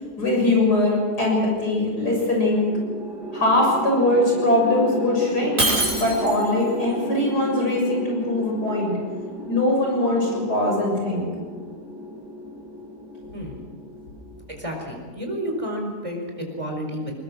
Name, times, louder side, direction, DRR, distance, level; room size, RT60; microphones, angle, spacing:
voice 1, 0.2-2.7 3.3-5.6 5.9-8.9 9.5-11.3, left 1 dB, 70° left, -1 dB, 7.5 m, -21 dB
sound 1, 2.7-15.0, equal, 80° right, 2.9 m, -34 dB
Shatter, 5.6-6.6, right 2 dB, 35° right, 5.9 m, -23 dB
voice 2, 14.6-16.2 16.6-17.1, equal, 20° right, 1 dB, 4.6 m, -30 dB
21.0 x 21.0 x 6.3 m, 1.5 s
omnidirectional pair, 1.8 m